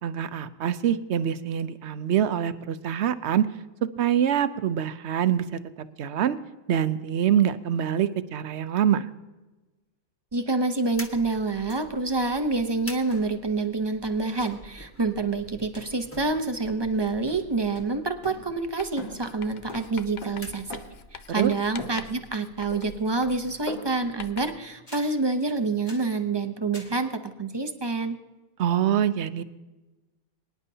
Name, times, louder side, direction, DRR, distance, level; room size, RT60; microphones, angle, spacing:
voice 1, 0.0-3.5 4.0-6.4 6.7-9.1 21.4-21.5 28.6-29.4, right 9 dB, 60° right, 13 dB, 0.8 m, -25 dB
voice 2, 10.3-20.8 21.1-28.2, right 3 dB, 30° right, 7 dB, 0.5 m, -27 dB
sound 1, 10.9-21.3, equal, 10° left, 1.3 m, -47 dB
sound 2, 11.7-11.8 12.1-12.2 13.1-13.3 14.4-14.7 15.7-16.0 16.6-17.0 17.3-18.7 19.0-21.1 21.8-22.4 22.7-23.2 23.7-24.2 24.9-25.2 25.8-26.2 26.7-27.0, equal, 30° left, 2.4 m, -43 dB
Writing, 18.8-24.7, left 6 dB, 65° left, 0.4 m, -45 dB
23.5 x 10.5 x 2.8 m, 1.1 s
omnidirectional pair, 1.5 m